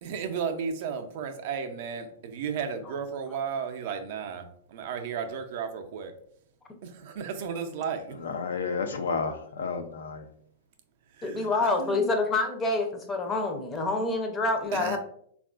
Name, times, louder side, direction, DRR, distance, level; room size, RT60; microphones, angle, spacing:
voice 1, 0.0-6.1 6.8-8.2 11.2-11.5 11.8-12.1 14.7-15.0, right 6 dB, 60° right, 0.4 m, -34 dB
voice 2, 8.2-10.2, left 5 dB, 80° left, 0.4 m, -31 dB
voice 3, 11.2-15.0, left 3 dB, 20° left, 0.5 m, -27 dB
3.5 x 2.3 x 2.3 m
hypercardioid pair, 120°, 0 cm